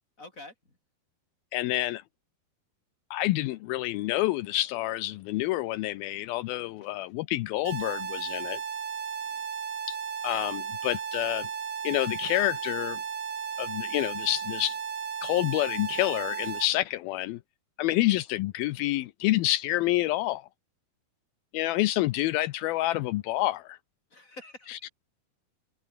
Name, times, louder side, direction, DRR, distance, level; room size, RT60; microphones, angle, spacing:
voice 1, 0.2-0.8 6.8-7.0 9.2-9.4 24.1-24.7, left 2 dB, 20° left, 7.2 m, -48 dB
voice 2, 1.5-2.0 3.1-8.6 9.9-10.0 10.2-11.5 11.8-13.0 13.6-14.8 15.2-17.4 17.8-20.5 21.5-23.8 24.7-24.9, left 16 dB, 80° left, 2.5 m, -28 dB
sound 1, 7.7-16.7, right 7 dB, 90° right, 6.0 m, -35 dB
omnidirectional pair, 4.5 m